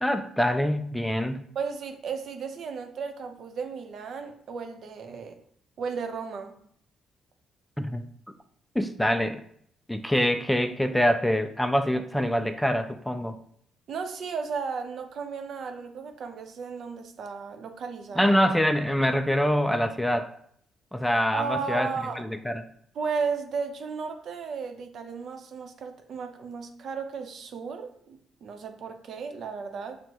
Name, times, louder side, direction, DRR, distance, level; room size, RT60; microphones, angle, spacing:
voice 1, 0.0-1.4 7.8-8.0 8.8-9.4 9.9-13.4 18.2-20.3 20.9-21.9 22.2-22.6, equal, 5° left, 8 dB, 0.3 m, -25 dB
voice 2, 1.5-5.4 5.8-6.6 10.2-10.3 13.9-18.3 21.3-22.2 22.9-30.0, right 5 dB, 65° right, 5 dB, 0.6 m, -34 dB
6.2 x 2.1 x 2.9 m, 0.65 s
cardioid pair, 90°, 0 cm